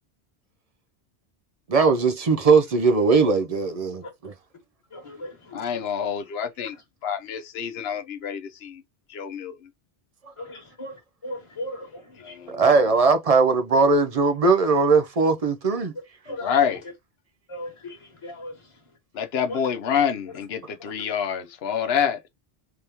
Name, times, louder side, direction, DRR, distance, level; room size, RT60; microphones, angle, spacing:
voice 1, 1.7-4.3 12.5-15.9, right 4 dB, 45° right, 0.6 m, -19 dB
voice 2, 4.9-5.6 10.4-11.0 11.2-12.4 16.3-16.5 17.5-18.0 18.2-18.5 19.5-19.6, left 1 dB, 25° left, 1.4 m, -37 dB
voice 3, 5.5-6.8 7.0-8.8 9.1-9.6 12.2-12.7 16.4-16.8 19.1-22.3, left 8 dB, 70° left, 1.0 m, -27 dB
3.5 x 3.4 x 2.9 m
omnidirectional pair, 1.1 m